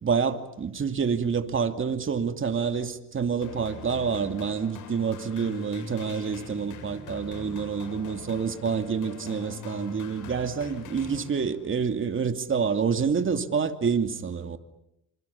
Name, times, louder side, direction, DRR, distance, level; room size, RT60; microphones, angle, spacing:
voice 1, 0.0-14.6, right 6 dB, 40° right, 2.7 m, -28 dB
sound 1, 3.4-11.7, left 5 dB, 85° left, 7.0 m, -42 dB
28.0 x 27.0 x 7.1 m
cardioid pair, 90°, 30 cm